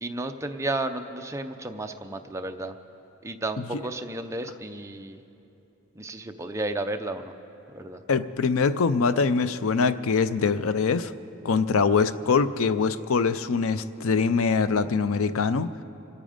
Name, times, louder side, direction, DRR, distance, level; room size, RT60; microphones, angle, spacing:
voice 1, 0.0-2.7 3.2-5.2 6.0-7.3 7.7-8.0, right 2 dB, 15° right, 6 dB, 0.6 m, -32 dB
voice 2, 8.1-11.1 11.4-15.8, left 5 dB, 80° left, 14 dB, 0.5 m, -23 dB
26.5 x 9.0 x 5.1 m, 2.9 s
head